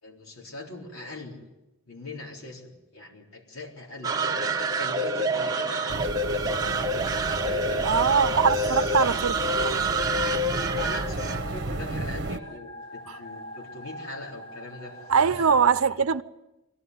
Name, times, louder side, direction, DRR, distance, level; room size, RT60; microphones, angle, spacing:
voice 1, 0.0-1.4 1.9-4.2 4.7-6.5 7.5-9.2 10.7-15.5 15.8-15.9, left 2 dB, 80° left, 4.1 m, -41 dB
sound 1, 4.0-12.4, right 2 dB, 20° right, 1.6 m, -27 dB
sound 2, 5.9-12.4, right 2 dB, 55° right, 1.2 m, -34 dB
voice 2, 7.8-9.8 15.1-16.2, right 6 dB, 80° right, 0.7 m, -22 dB
sound 3, 9.5-15.3, left 1 dB, 25° left, 1.8 m, -44 dB
23.0 x 17.5 x 9.4 m
head